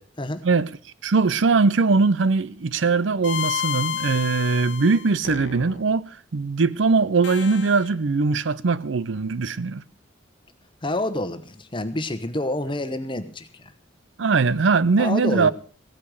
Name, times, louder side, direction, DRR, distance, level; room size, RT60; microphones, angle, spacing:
voice 1, 1.0-9.8 14.2-15.5, right 4 dB, 90° right, 0.6 m, -21 dB
sound 1, 2.8-5.9 7.2-7.9, left 8 dB, 75° left, 1.0 m, -31 dB
voice 2, 10.8-13.7 15.0-15.5, left 1 dB, 25° left, 1.1 m, -28 dB
16.5 x 8.6 x 6.4 m
head